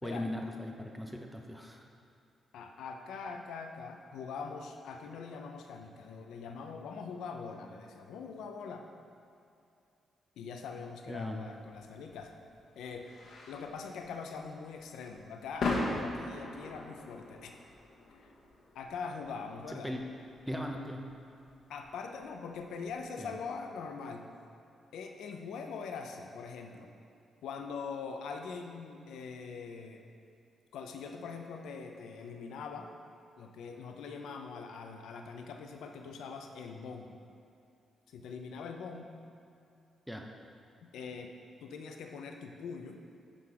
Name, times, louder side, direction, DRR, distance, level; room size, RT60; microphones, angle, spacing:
voice 1, 0.0-1.9 11.1-11.4 19.7-20.0 20.5-21.2 23.2-23.4 40.1-40.3, left 1 dB, 5° right, 2 dB, 0.7 m, -39 dB
voice 2, 2.5-8.9 10.4-12.4 12.8-13.1 13.5-17.5 18.2-18.3 18.7-19.9 21.7-24.3 24.9-26.9 27.4-30.0 30.7-32.9 33.4-37.2 38.1-39.1 40.8-43.0, left 5 dB, 90° left, 4 dB, 0.6 m, -43 dB
sound 1, 11.7-23.0, left 2 dB, 70° left, 1.3 m, -41 dB
10.0 x 3.9 x 4.8 m, 2.6 s
cardioid pair, 85°, 0 cm